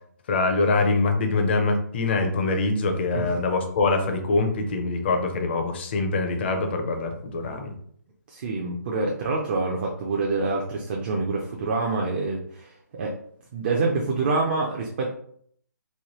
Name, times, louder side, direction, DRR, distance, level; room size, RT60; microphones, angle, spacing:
voice 1, 0.3-7.7, left 3 dB, 35° left, 5 dB, 0.5 m, -24 dB
voice 2, 8.3-13.2 13.5-15.1, right 3 dB, 35° right, 0 dB, 0.4 m, -26 dB
3.1 x 2.1 x 3.0 m, 0.63 s
hypercardioid pair, 155°, 10 cm